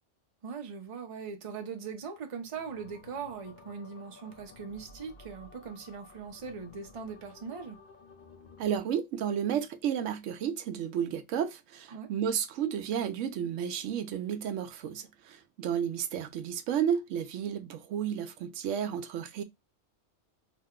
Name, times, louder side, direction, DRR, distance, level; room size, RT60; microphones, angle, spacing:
voice 1, 0.4-7.8 11.9-12.1, right 6 dB, 35° right, 0.6 m, -40 dB
sound 1, 2.5-8.8, left 4 dB, 50° left, 0.6 m, -54 dB
voice 2, 8.6-19.4, right 8 dB, 80° right, 0.9 m, -32 dB
2.8 x 2.1 x 3.6 m
omnidirectional pair, 1.3 m